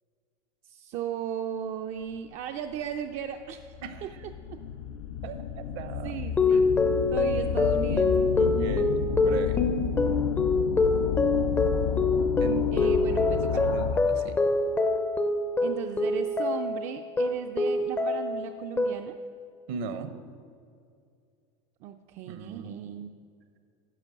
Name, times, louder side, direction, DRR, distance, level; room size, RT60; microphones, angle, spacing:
voice 1, 0.7-3.7 4.0-4.1 4.5-4.6 5.3-5.4 6.0-6.7 7.1-8.8 12.7-13.8 15.6-19.1 21.8-23.1, right 9 dB, 45° right, 5 dB, 0.4 m, -36 dB
sound 1, 2.8-2.9 3.6-14.2, left 7 dB, 80° left, 0.6 m, -31 dB
voice 2, 5.2-6.2 6.5-6.6 8.4-9.6 12.4-12.9 13.7-14.4 19.7-20.1 22.3-22.8, right 7 dB, 60° right, 10 dB, 0.8 m, -38 dB
sound 2, 6.4-16.8 17.2-18.4 18.8-19.3, left 3 dB, 10° left, 0.4 m, -25 dB
10.5 x 4.6 x 6.3 m, 2.3 s
supercardioid pair, 125°, 16 cm